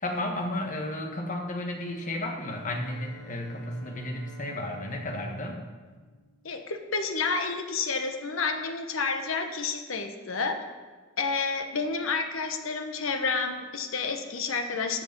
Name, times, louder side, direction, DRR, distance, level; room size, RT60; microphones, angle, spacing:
voice 1, 0.0-5.6, left 1 dB, 40° left, 2 dB, 1.4 m, -33 dB
Bowed string instrument, 1.9-7.0, right 2 dB, 60° right, 2.8 m, -52 dB
voice 2, 6.4-10.6 11.2-15.0, left 4 dB, 80° left, 6 dB, 1.1 m, -30 dB
13.0 x 6.9 x 5.3 m, 1.4 s
head